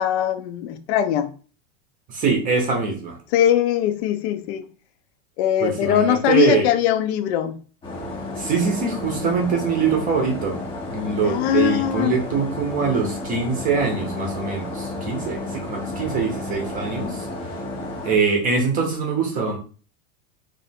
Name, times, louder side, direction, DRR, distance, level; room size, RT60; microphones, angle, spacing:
voice 1, 0.0-1.3 3.3-4.7 5.4-7.6 11.2-12.2, left 11 dB, 55° left, 0.6 m, -21 dB
voice 2, 2.1-3.2 5.6-6.7 8.4-10.6 10.9-17.3 18.0-19.6, right 5 dB, 20° right, 0.7 m, -23 dB
sound 1, 7.8-18.2, left 2 dB, 15° left, 0.6 m, -32 dB
3.3 x 2.6 x 4.2 m
supercardioid pair, 155°, 40 cm